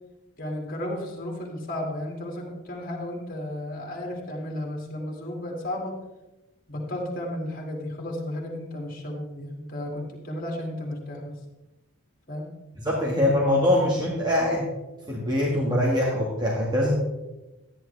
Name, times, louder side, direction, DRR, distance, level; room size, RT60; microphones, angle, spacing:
voice 1, 0.4-6.0 6.7-11.4 12.3-12.5, left 1 dB, 40° left, 0 dB, 2.6 m, -33 dB
voice 2, 12.8-14.7 15.1-16.9, left 1 dB, 20° right, -4 dB, 1.8 m, -23 dB
13.5 x 10.5 x 3.4 m, 1.0 s
head